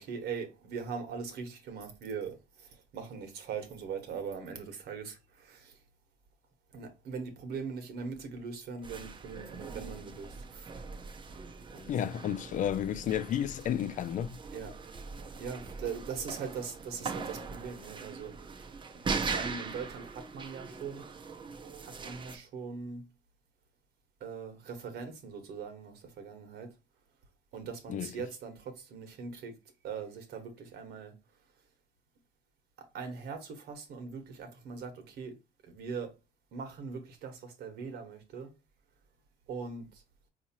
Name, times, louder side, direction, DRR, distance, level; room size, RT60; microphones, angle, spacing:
voice 1, 0.0-5.8 6.7-10.7 11.7-12.0 14.5-14.8 15.4-18.4 18.9-21.1 21.8-23.0 24.2-26.7 27.5-29.6 29.8-31.1 32.8-35.4 35.6-36.1 36.5-38.5 39.5-40.0, right 5 dB, 70° right, 1.3 m, -41 dB
sound 1, 8.8-22.4, right 4 dB, 30° right, 0.6 m, -41 dB
voice 2, 11.9-14.4 27.9-28.1, left 10 dB, 50° left, 0.4 m, -32 dB
4.7 x 2.8 x 2.8 m
cardioid pair, 110°, 17 cm